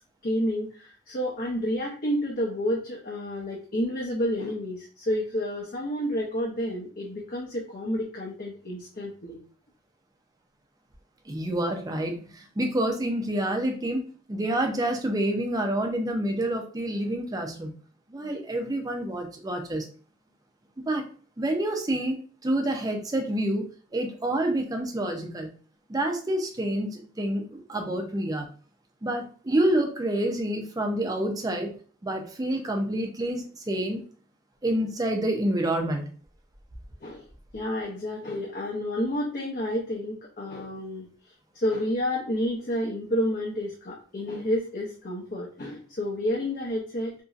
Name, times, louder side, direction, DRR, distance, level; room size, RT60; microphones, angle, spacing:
voice 1, 0.2-9.4 37.0-37.2 37.5-41.1 41.5-47.1, equal, 45° left, -3 dB, 0.6 m, -30 dB
voice 2, 11.3-17.7 18.1-19.9 20.9-21.0 21.4-22.2 22.4-25.5 25.9-28.5 29.0-31.7 32.0-34.0 34.6-36.2, right 1 dB, 20° right, 3 dB, 0.5 m, -28 dB
2.9 x 2.6 x 2.4 m, 0.41 s
head